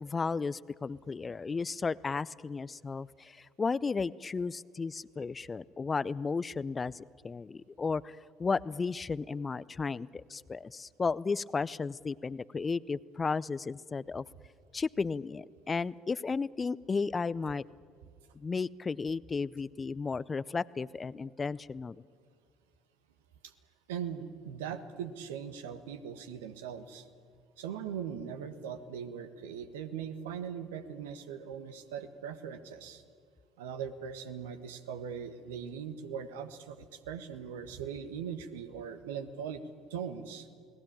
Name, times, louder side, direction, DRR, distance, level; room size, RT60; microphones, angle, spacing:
voice 1, 0.0-14.2 14.7-17.6 18.4-22.0, left 4 dB, 30° left, 19 dB, 0.6 m, -34 dB
voice 2, 23.9-27.1 27.6-33.0 33.6-39.6 39.9-40.5, right 7 dB, 75° right, 9 dB, 1.4 m, -40 dB
29.0 x 18.5 x 8.8 m, 2.2 s
figure-of-eight pair, 60°, 0 cm